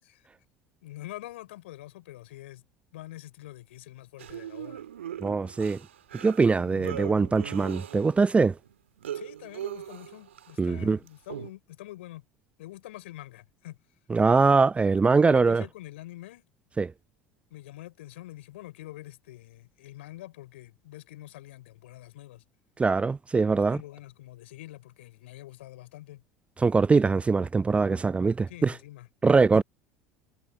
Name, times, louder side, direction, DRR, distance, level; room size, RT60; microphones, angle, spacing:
voice 1, 0.8-2.6 2.9-4.8 9.1-12.2 12.6-13.8 14.3-14.6 15.2-16.5 17.5-22.4 23.7-26.2 28.5-29.1 29.5-29.6, left 16 dB, 70° left, 3.7 m, -45 dB
sound 1, 4.2-8.3 8.6-10.6 11.1-11.5, right 10 dB, 75° right, 2.1 m, -40 dB
voice 2, 5.2-5.8 6.1-8.6 10.6-11.0 14.1-15.6 16.8-16.9 22.8-23.8 26.6-28.8 29.2-29.6, right 4 dB, 20° right, 0.5 m, -22 dB
figure-of-eight pair, 70°, 7 cm